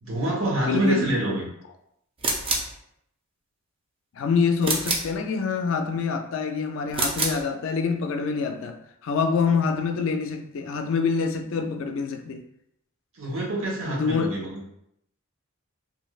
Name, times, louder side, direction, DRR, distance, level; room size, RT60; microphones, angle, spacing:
voice 1, 0.0-1.4 13.1-14.6, right 1 dB, 75° right, 1.0 m, -26 dB
voice 2, 0.6-1.1 4.2-12.4 13.9-14.3, left 5 dB, 65° left, 0.3 m, -26 dB
sound 1, 2.2-2.8 4.6-5.2 6.9-7.4, right 2 dB, 25° right, 0.4 m, -26 dB
3.1 x 2.6 x 2.3 m
head